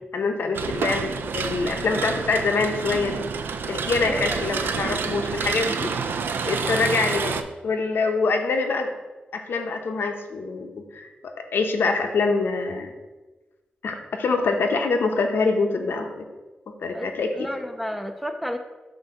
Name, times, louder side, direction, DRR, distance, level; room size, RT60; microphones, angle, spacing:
voice 1, 0.1-3.2 3.7-5.9 6.4-9.0 9.3-12.9 13.8-16.2 16.8-17.5, left 4 dB, 85° left, 4 dB, 0.7 m, -25 dB
sound 1, 0.5-7.4, right 5 dB, 75° right, 0.4 m, -28 dB
voice 2, 16.9-18.6, equal, ahead, 5 dB, 0.4 m, -32 dB
7.7 x 2.6 x 5.8 m, 1.2 s
wide cardioid pair, 155°, 4 cm